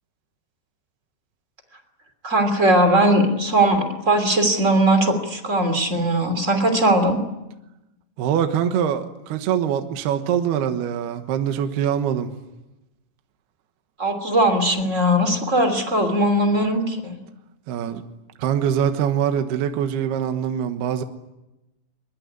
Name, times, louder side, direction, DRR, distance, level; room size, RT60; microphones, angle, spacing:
voice 1, 2.2-7.2 14.0-17.2, right 1 dB, 20° right, 2.2 m, -19 dB
voice 2, 8.2-12.3 17.7-18.0 18.4-21.0, right 9 dB, 70° right, 2.9 m, -23 dB
23.5 x 22.5 x 9.7 m
omnidirectional pair, 5.6 m